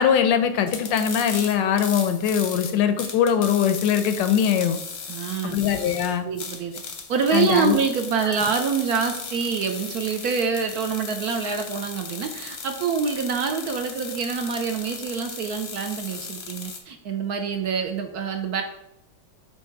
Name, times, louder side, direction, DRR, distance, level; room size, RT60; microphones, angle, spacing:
voice 1, 0.0-4.8 5.4-6.3 7.3-7.8 8.2-8.3, left 8 dB, 80° left, 9 dB, 1.3 m, -21 dB
sound 1, 0.7-16.8, left 5 dB, 50° left, 0.8 m, -36 dB
voice 2, 5.1-5.6 6.2-6.8 7.1-18.6, right 6 dB, 65° right, 5 dB, 1.0 m, -26 dB
8.1 x 2.9 x 4.6 m, 0.83 s
omnidirectional pair, 2.0 m